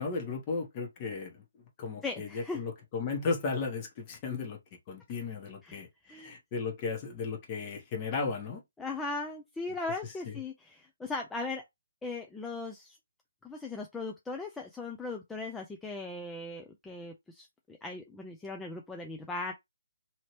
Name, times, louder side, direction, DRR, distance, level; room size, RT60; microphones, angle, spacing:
voice 1, 0.0-1.4 1.8-4.6 4.9-5.9 6.2-8.6 10.3-10.4, left 4 dB, 25° left, 1.1 m, -35 dB
voice 2, 2.0-2.6 5.6-5.8 6.1-6.3 8.8-11.6 12.0-13.0 13.4-19.5, left 3 dB, 5° left, 0.4 m, -38 dB
2.9 x 2.8 x 3.1 m
figure-of-eight pair, 145°, 0 cm